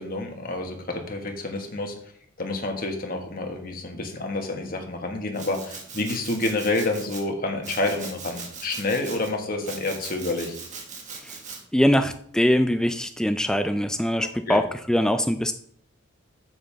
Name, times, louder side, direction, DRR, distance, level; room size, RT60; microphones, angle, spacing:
voice 1, 0.0-1.9 2.4-10.6 14.2-14.6, left 2 dB, 45° left, 3 dB, 1.6 m, -29 dB
Domestic sounds home sounds, 5.3-7.2 7.6-9.3 9.6-11.6, right 4 dB, 40° right, 1.8 m, -40 dB
voice 2, 11.7-15.5, equal, 5° left, 9 dB, 0.3 m, -22 dB
9.4 x 7.6 x 3.5 m, 0.62 s
head